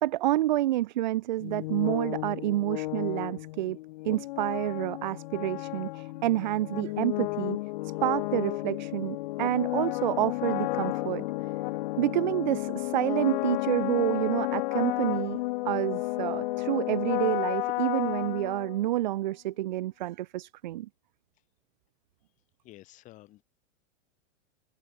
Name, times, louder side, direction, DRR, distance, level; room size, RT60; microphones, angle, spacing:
voice 1, 0.0-3.8 4.0-7.6 7.8-11.2 12.0-15.4 15.7-20.9, right 15 dB, 40° right, 0.4 m, -29 dB
sound 1, 1.4-19.1, left 19 dB, 40° left, 1.2 m, -32 dB
voice 2, 22.6-23.4, left 16 dB, 20° left, 1.4 m, -51 dB
open air
supercardioid pair, 170°, 38 cm